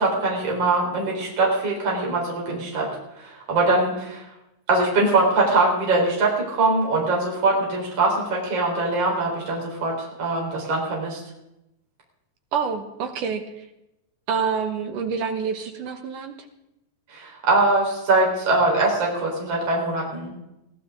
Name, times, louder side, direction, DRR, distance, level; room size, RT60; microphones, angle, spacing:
voice 1, 0.0-2.9 3.2-4.2 4.7-11.2 17.1-20.3, right 2 dB, 40° right, -2 dB, 5.0 m, -22 dB
voice 2, 12.5-13.4 14.3-16.5, right 6 dB, 65° right, 6 dB, 2.4 m, -27 dB
21.5 x 15.5 x 3.7 m, 0.87 s
omnidirectional pair, 4.6 m